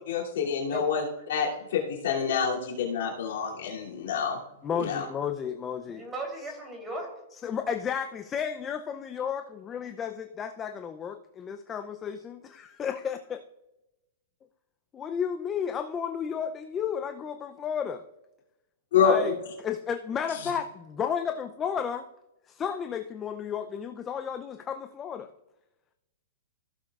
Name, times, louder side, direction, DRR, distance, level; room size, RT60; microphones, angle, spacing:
voice 1, 0.1-1.0 1.3-4.4 4.8-5.0 18.9-19.2, left 7 dB, 70° left, -2 dB, 2.9 m, -27 dB
voice 2, 0.6-1.2 5.9-7.1, right 2 dB, 15° right, 1 dB, 3.6 m, -38 dB
voice 3, 4.6-6.1 7.4-13.4 14.9-18.0 19.0-19.3 19.6-22.1 22.5-25.3, left 7 dB, 20° left, 7 dB, 0.6 m, -33 dB
15.5 x 7.4 x 2.5 m, 0.93 s
hypercardioid pair, 135°, 0 cm